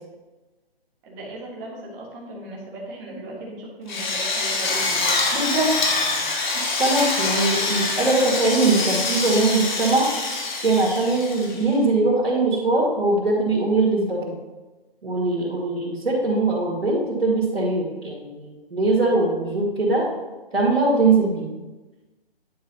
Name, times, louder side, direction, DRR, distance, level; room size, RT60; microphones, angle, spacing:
voice 1, 1.0-5.2, right 2 dB, 20° right, -4 dB, 1.6 m, -37 dB
Drill, 3.9-11.7, left 3 dB, 50° left, 1.5 m, -25 dB
voice 2, 5.3-5.7 6.4-10.1 10.6-14.3 15.0-20.0 20.5-21.5, right 2 dB, 90° right, -6 dB, 2.2 m, -21 dB
10.0 x 5.5 x 2.9 m, 1.2 s
hypercardioid pair, 150°, 30 cm